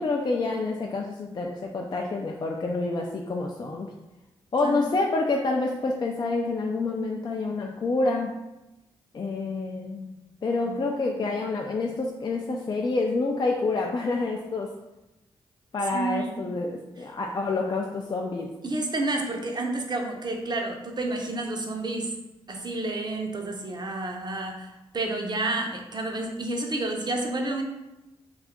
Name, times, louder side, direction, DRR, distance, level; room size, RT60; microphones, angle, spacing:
voice 1, 0.0-3.9 4.5-8.3 9.1-10.2 10.4-14.7 15.7-18.6, left 3 dB, 40° left, 1 dB, 0.3 m, -28 dB
voice 2, 15.9-16.5 18.6-22.1 22.5-27.6, right 2 dB, 40° right, 2 dB, 0.6 m, -30 dB
2.6 x 2.3 x 3.5 m, 0.99 s
supercardioid pair, 45°, 11 cm